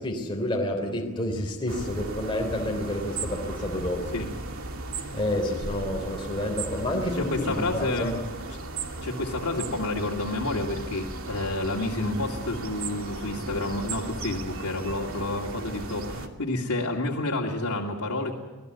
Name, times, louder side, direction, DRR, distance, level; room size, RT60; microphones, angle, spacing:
voice 1, 0.0-4.1 5.1-8.2, left 1 dB, 20° left, 0 dB, 3.4 m, -29 dB
sound 1, 1.7-16.3, right 2 dB, 70° right, 2.3 m, -36 dB
voice 2, 7.2-8.2 9.0-18.4, left 2 dB, 80° left, -2 dB, 2.6 m, -29 dB
26.5 x 18.5 x 8.3 m, 1.1 s
head